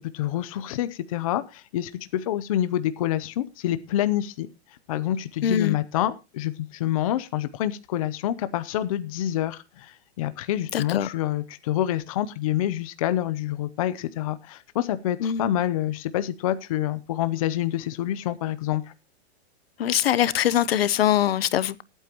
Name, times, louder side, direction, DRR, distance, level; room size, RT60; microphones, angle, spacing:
voice 1, 0.1-4.5 4.9-18.9, left 12 dB, 35° left, 0.7 m, -27 dB
voice 2, 5.4-5.8 10.7-11.1 15.2-15.4 19.8-21.8, left 11 dB, 65° left, 0.9 m, -22 dB
21.0 x 9.0 x 2.9 m
supercardioid pair, 175°, 32 cm